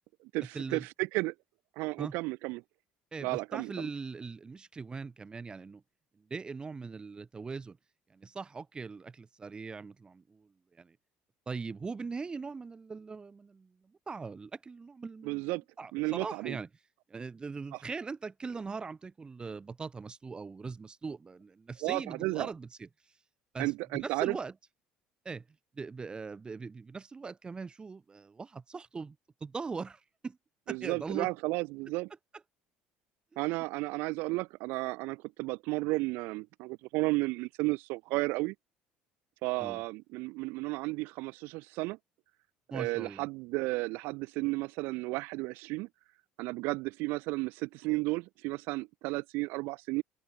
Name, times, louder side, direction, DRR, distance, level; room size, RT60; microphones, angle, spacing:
voice 1, 0.3-1.3 1.8-2.6 3.2-3.9 15.2-15.6 15.9-16.6 21.8-22.5 23.6-24.4 30.7-32.1 33.4-38.5 39.4-42.0 42.7-45.9 46.4-50.0, right 24 dB, 75° right, 1.8 m, -33 dB
voice 2, 3.1-5.8 6.3-7.8 8.1-11.0 11.5-13.7 14.1-15.5 15.8-16.7 17.1-22.9 23.5-24.5 25.2-25.4 25.8-29.2 29.4-30.4 30.7-31.3 39.6-39.8 42.7-43.2, right 4 dB, 25° right, 7.6 m, -40 dB
open air
supercardioid pair, 90°, 4 cm